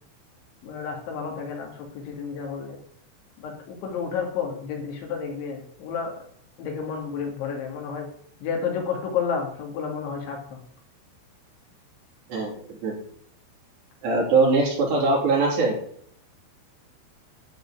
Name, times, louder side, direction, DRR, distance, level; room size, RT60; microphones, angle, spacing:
voice 1, 0.6-2.8 3.4-6.1 6.6-8.1 8.4-10.4, left 6 dB, 65° left, 1 dB, 4.4 m, -31 dB
voice 2, 12.3-13.0 14.0-15.8, right 3 dB, 55° right, -2 dB, 5.4 m, -22 dB
12.0 x 5.1 x 8.4 m, 0.65 s
omnidirectional pair, 5.9 m